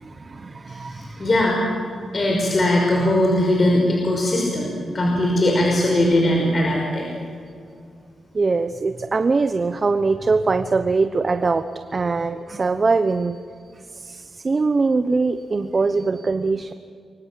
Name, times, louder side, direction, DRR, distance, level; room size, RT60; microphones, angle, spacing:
voice 1, 0.0-1.3 8.3-11.6 11.9-13.4 13.9-16.7, right 4 dB, 35° right, 8 dB, 1.0 m, -22 dB
voice 2, 0.7-1.7 2.1-4.7 4.9-7.1, left 1 dB, 35° left, 0 dB, 5.6 m, -20 dB
30.0 x 24.0 x 7.6 m, 2.3 s
wide cardioid pair, 120°, 0 cm